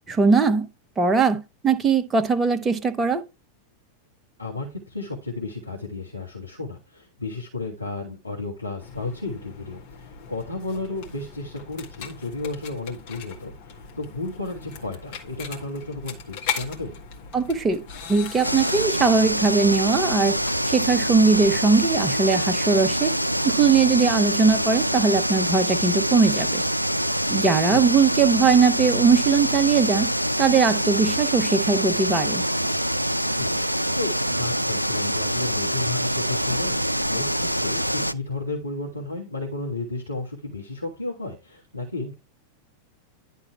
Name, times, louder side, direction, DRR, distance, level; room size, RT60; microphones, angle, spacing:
voice 1, 0.1-0.7 1.0-3.2 17.3-17.8 18.1-20.4 20.7-23.1 23.4-26.6 27.3-30.1 30.4-32.4, right 5 dB, 15° right, 1.1 m, -20 dB
voice 2, 4.4-17.0 27.7-27.9 33.4-33.6 33.9-42.1, left 2 dB, 85° left, 1.6 m, -33 dB
sound 1, 8.8-21.6, left 7 dB, 50° left, 2.0 m, -39 dB
sound 2, 18.4-38.1, equal, 90° right, 0.3 m, -25 dB
11.0 x 3.9 x 4.4 m
figure-of-eight pair, 90°, 0 cm